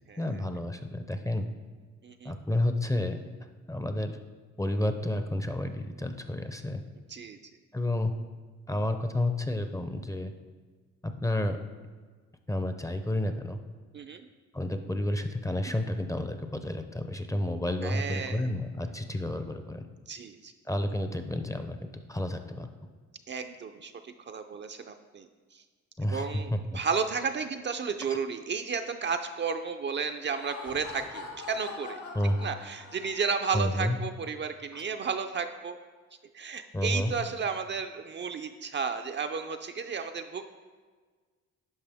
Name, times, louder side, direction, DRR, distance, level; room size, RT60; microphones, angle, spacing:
voice 1, 0.2-1.5 2.2-3.2 3.7-4.2 4.6-6.8 7.7-8.1 8.7-10.3 11.0-11.6 12.5-13.6 14.5-19.8 20.7-22.7 26.0-26.6 28.1-28.2 32.1-32.4 33.5-34.0 34.7-34.8 36.7-37.1, left 1 dB, 10° left, 7 dB, 0.5 m, -30 dB
voice 2, 2.0-2.3 7.1-7.4 13.9-14.2 17.8-18.5 20.1-20.5 23.3-25.3 25.5-25.6 26.1-32.0 32.4-35.8 36.3-40.4, right 5 dB, 40° right, 6 dB, 0.4 m, -33 dB
Laughter, 30.2-33.5, left 4 dB, 70° left, 2.1 m, -43 dB
11.0 x 5.1 x 3.5 m, 1.5 s
cardioid pair, 90°, 30 cm